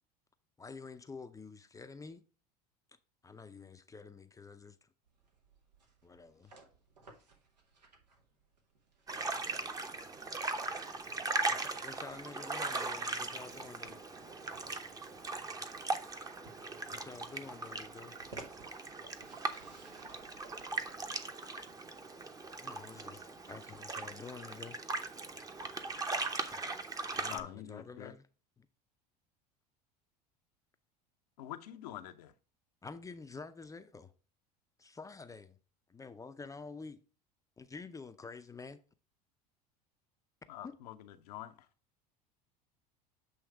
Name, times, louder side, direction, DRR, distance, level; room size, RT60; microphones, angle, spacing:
voice 1, 0.6-2.2 3.2-4.9 6.0-6.5 11.5-14.0 16.9-18.2 22.6-24.8 26.4-26.8 27.1-28.3 28.6-28.7 32.8-34.1 34.8-35.6 35.9-37.0 37.6-38.8 40.6-40.7, left 4 dB, 15° left, 0.5 m, -49 dB
sound 1, 5.1-21.1, right 3 dB, 90° right, 1.3 m, -58 dB
sound 2, 9.1-27.4, right 3 dB, 15° right, 0.8 m, -39 dB
voice 2, 12.2-15.7 16.6-17.3, right 3 dB, 70° right, 2.5 m, -63 dB
voice 3, 27.3-28.1 31.4-32.3 40.5-40.9 41.3-41.5, left 12 dB, 75° left, 0.7 m, -45 dB
7.9 x 3.2 x 4.6 m
hypercardioid pair, 80°, 21 cm